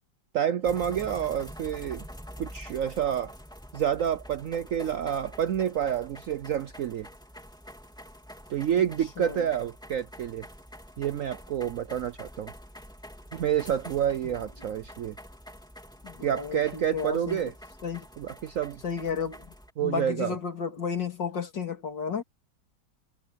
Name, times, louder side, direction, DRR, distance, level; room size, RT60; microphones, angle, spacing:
voice 1, 0.3-2.1 2.4-3.3 3.7-7.1 8.5-10.5 11.0-12.5 13.3-15.2 16.2-17.5 18.2-18.8 19.8-20.3, right 9 dB, 70° right, 0.8 m, -28 dB
sound 1, 0.6-19.7, equal, ahead, 3.3 m, -46 dB
voice 2, 9.2-9.5 14.2-14.3 16.0-17.5 17.8-18.1 18.8-19.5 19.8-22.2, left 6 dB, 75° left, 3.5 m, -33 dB
omnidirectional pair, 2.0 m